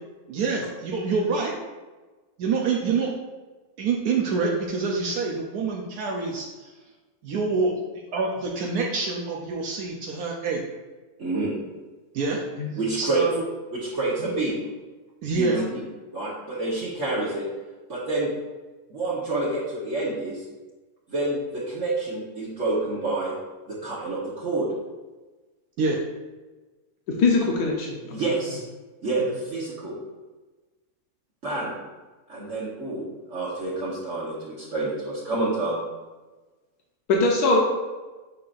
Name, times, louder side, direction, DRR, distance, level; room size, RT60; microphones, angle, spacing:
voice 1, 0.3-1.5 2.4-3.1 3.8-6.7 7.2-7.8 8.1-10.6 12.1-12.4 13.0-13.4 14.2-14.3 15.2-15.6 25.8-26.0, right 4 dB, 80° right, -1 dB, 1.3 m, -26 dB
voice 2, 11.2-11.5 12.8-13.2 13.7-14.6 15.3-15.8 16.1-17.5 17.9-18.3 18.9-20.4 21.1-23.3 23.7-24.7 28.1-28.6 29.0-30.0 31.4-31.8 32.3-35.8, right 2 dB, 55° right, -7 dB, 1.6 m, -28 dB
voice 3, 27.2-28.0 37.1-37.6, left 3 dB, 80° left, -1 dB, 1.5 m, -21 dB
7.4 x 5.6 x 2.6 m, 1.2 s
omnidirectional pair, 1.6 m